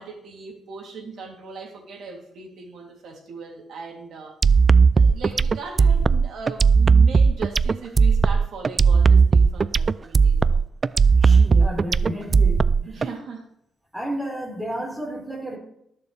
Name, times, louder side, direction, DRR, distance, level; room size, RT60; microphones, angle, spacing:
voice 1, 0.0-4.4 4.9-10.6 12.8-13.5, right 4 dB, 80° right, 1 dB, 3.1 m, -38 dB
sound 1, 4.4-13.1, right 5 dB, 40° right, 0.3 m, -16 dB
voice 2, 11.2-13.0 13.9-15.6, equal, 5° right, -3 dB, 4.7 m, -32 dB
20.0 x 6.9 x 3.4 m, 0.73 s
cardioid pair, 100°, 0 cm